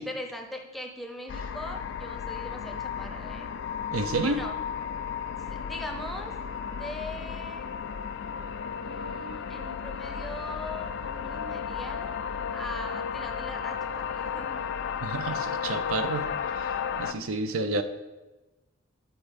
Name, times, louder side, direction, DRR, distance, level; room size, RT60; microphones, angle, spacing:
voice 1, 0.0-3.5 4.2-4.5 5.5-6.3 6.6-7.7 8.8-12.2 12.5-14.6 17.0-17.3, left 1 dB, ahead, 3 dB, 0.6 m, -40 dB
sound 1, 1.3-17.1, left 7 dB, 55° left, 0.3 m, -34 dB
voice 2, 3.9-4.4 15.0-17.8, right 2 dB, 80° right, 9 dB, 0.6 m, -30 dB
8.4 x 4.4 x 5.2 m, 1.1 s
head